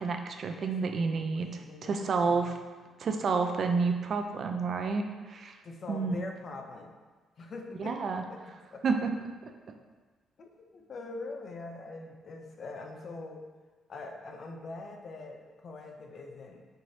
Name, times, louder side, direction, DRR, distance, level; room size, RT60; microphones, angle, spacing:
voice 1, 0.0-2.5 3.0-5.6 5.9-6.1 7.8-8.2 8.8-9.1, right 4 dB, 55° right, 5 dB, 0.4 m, -30 dB
voice 2, 0.6-2.5 5.6-7.0 7.4-8.8 10.4-13.4 13.9-16.6, left 3 dB, 50° left, 3 dB, 0.5 m, -43 dB
4.4 x 2.6 x 3.1 m, 1.4 s
cardioid pair, 90°, 0 cm